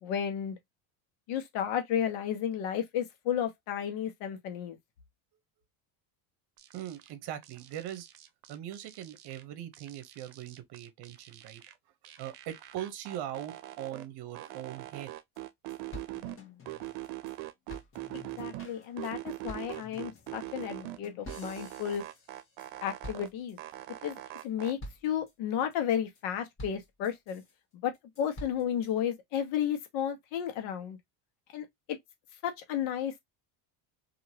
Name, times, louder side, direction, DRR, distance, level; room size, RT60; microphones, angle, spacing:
voice 1, 0.0-0.6 1.3-4.8 18.1-22.0 22.8-23.6 24.0-27.4 27.8-31.0 31.5-32.0 32.4-33.1, left 9 dB, 75° left, 1.1 m, -33 dB
sound 1, 6.6-7.1 7.4-9.4 9.7-11.7 12.0-14.1 14.3-16.4 16.7-18.7 19.0-21.0 21.3-23.3 23.6-24.7, right 16 dB, 80° right, 0.7 m, -42 dB
voice 2, 6.7-8.1 8.5-11.6 12.2-15.1, right 11 dB, 55° right, 0.9 m, -40 dB
sound 2, 15.0-15.1 15.3-15.4 15.7-17.3 17.7-22.7 23.0-23.7 24.1-24.5 24.8-25.3 25.7-26.2 26.6-27.5 27.9-28.9, left 1 dB, 25° left, 1.2 m, -48 dB
2.9 x 2.7 x 2.7 m
cardioid pair, 115°, 48 cm